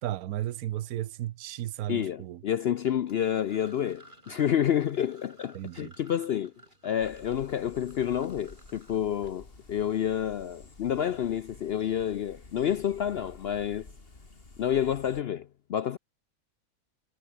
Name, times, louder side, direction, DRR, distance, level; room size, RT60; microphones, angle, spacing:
voice 1, 0.0-2.4 5.5-5.9, right 13 dB, 80° right, 1.1 m, -34 dB
voice 2, 1.9-6.5 6.8-13.9 14.6-16.0, left 10 dB, 65° left, 0.6 m, -29 dB
sound 1, 3.0-9.9, right 1 dB, 30° right, 6.1 m, -57 dB
sound 2, 7.0-15.2, left 3 dB, 40° left, 2.9 m, -51 dB
omnidirectional pair, 1.5 m